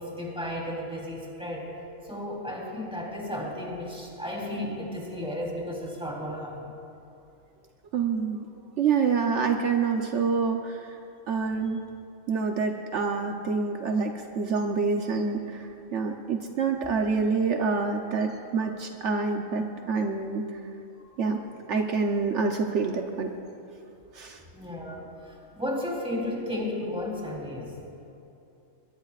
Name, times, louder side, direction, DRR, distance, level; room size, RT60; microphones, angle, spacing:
voice 1, 0.0-1.7 2.0-6.7 24.5-27.8, left 1 dB, 5° right, -3 dB, 3.4 m, -34 dB
voice 2, 7.9-8.5 8.8-11.0 11.3-11.8 12.3-20.6 21.2-21.4 21.7-23.3 24.1-24.4, right 5 dB, 70° right, 3 dB, 1.1 m, -27 dB
22.5 x 22.0 x 2.4 m, 2.8 s
omnidirectional pair, 1.3 m